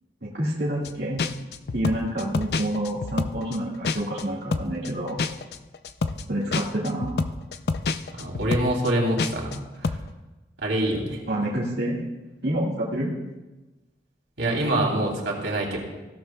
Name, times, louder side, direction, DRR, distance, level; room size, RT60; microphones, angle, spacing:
voice 1, 0.2-1.2 1.7-5.2 6.3-7.3 11.3-12.0 12.4-13.1, right 1 dB, 60° right, -6 dB, 1.8 m, -28 dB
sound 1, 0.8-0.9 1.2-4.2 4.5-9.6 9.8-10.1, left 4 dB, 60° left, 0.4 m, -28 dB
voice 2, 8.0-10.0 10.6-11.2 14.4-15.8, right 1 dB, 90° right, -1 dB, 2.9 m, -25 dB
16.0 x 11.5 x 2.3 m, 1.1 s
head